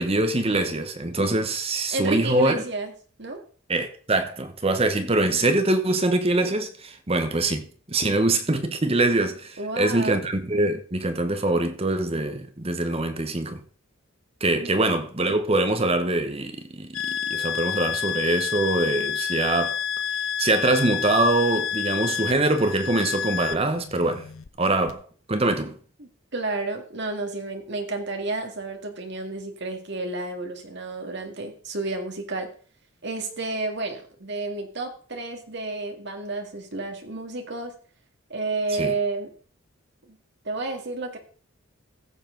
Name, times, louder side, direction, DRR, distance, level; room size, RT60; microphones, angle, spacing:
voice 1, 0.0-2.6 3.7-13.6 14.4-19.8 20.4-24.2 24.6-25.0 25.3-25.7 38.8-38.9, right 2 dB, 25° right, 0.9 m, -24 dB
voice 2, 1.9-2.9 3.2-3.4 9.6-10.3 14.6-14.7 26.0-32.5 33.0-37.7 38.3-39.3 40.1-40.2 40.4-41.2, right 3 dB, 50° right, 2.0 m, -31 dB
sound 1, 16.9-24.5 24.9-25.0, left 8 dB, 75° left, 0.7 m, -29 dB
15.0 x 7.3 x 3.8 m
head